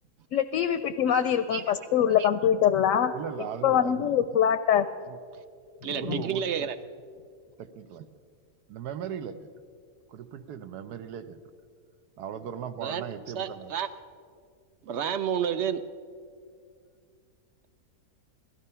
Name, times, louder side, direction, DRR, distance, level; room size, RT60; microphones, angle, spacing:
voice 1, 0.3-3.1 3.6-4.9 5.9-6.2, left 9 dB, 70° left, 0.8 m, -24 dB
voice 2, 3.1-4.1 5.1-5.2 5.9-6.7 7.6-8.1 8.7-9.5 10.1-11.4 12.2-13.8, right 8 dB, 90° right, 1.3 m, -38 dB
voice 3, 5.8-6.8 12.8-13.0 13.4-13.9 14.8-15.8, right 8 dB, 65° right, 0.7 m, -30 dB
17.0 x 13.0 x 5.5 m
omnidirectional pair, 1.6 m